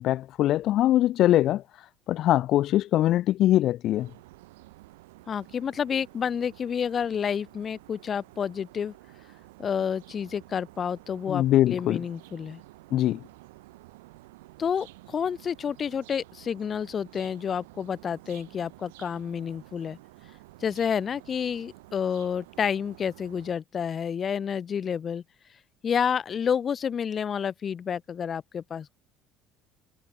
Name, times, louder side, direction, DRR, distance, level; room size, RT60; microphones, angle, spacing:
voice 1, 0.0-1.6 2.1-4.1 11.3-12.0 12.9-13.2, left 13 dB, 60° left, 0.5 m, -22 dB
sound 1, 4.0-23.5, right 20 dB, 90° right, 6.4 m, -51 dB
voice 2, 5.3-8.9 9.6-12.6 14.6-20.0 20.6-25.2 25.8-28.9, left 7 dB, 40° left, 3.4 m, -29 dB
supercardioid pair, 85°, 0 cm